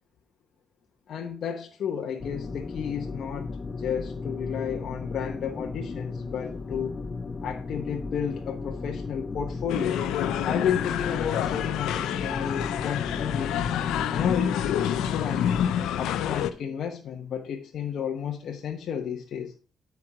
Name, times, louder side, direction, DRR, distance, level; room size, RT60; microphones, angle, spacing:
voice 1, 1.1-3.5 3.8-7.0 7.4-10.0 10.4-13.6 14.1-14.7 15.2-15.5 16.0-19.5, left 8 dB, 65° left, 1.0 m, -32 dB
sound 1, 2.2-15.7, left 4 dB, 35° left, 0.7 m, -35 dB
sound 2, 9.7-16.5, left 10 dB, 90° left, 0.6 m, -28 dB
9.7 x 4.7 x 4.8 m
cardioid pair, 90°, 0 cm